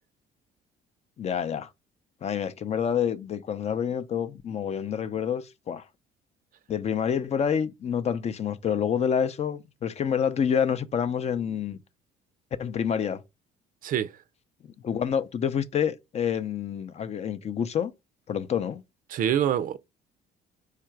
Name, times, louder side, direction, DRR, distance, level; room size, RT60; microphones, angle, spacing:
voice 1, 1.2-1.7 2.2-5.9 6.7-11.8 12.6-13.2 14.8-17.9 18.3-18.8, left 8 dB, 40° left, 0.5 m, -28 dB
voice 2, 19.1-19.8, right 10 dB, 55° right, 0.4 m, -25 dB
4.7 x 2.5 x 4.4 m
cardioid pair, 110°, 17 cm